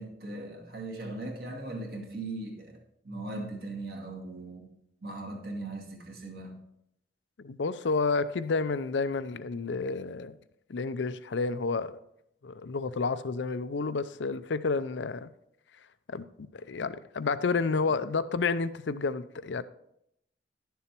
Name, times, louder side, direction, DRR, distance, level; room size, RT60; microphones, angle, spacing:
voice 1, 0.0-2.8 3.0-4.7 5.0-6.6, right 2 dB, 55° right, 2.0 m, -39 dB
voice 2, 7.4-10.4 10.7-12.0 12.4-15.3 16.1-19.6, left 4 dB, 85° left, 0.5 m, -30 dB
11.0 x 7.0 x 4.5 m
head